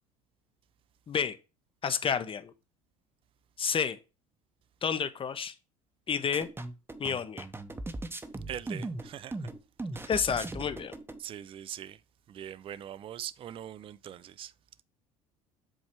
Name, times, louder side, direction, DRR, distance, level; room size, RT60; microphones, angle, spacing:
voice 1, 1.1-1.4 1.8-2.5 3.6-4.0 4.8-5.5 6.1-6.5 7.0-7.5 10.1-10.9, left 7 dB, 30° left, 0.8 m, -30 dB
sound 1, 6.3-11.2, right 2 dB, 15° right, 0.8 m, -39 dB
voice 2, 8.5-9.5 9.9-10.1 11.2-12.0 12.3-14.5, right 10 dB, 30° right, 0.4 m, -42 dB
7.9 x 3.1 x 4.5 m
hypercardioid pair, 65°, 18 cm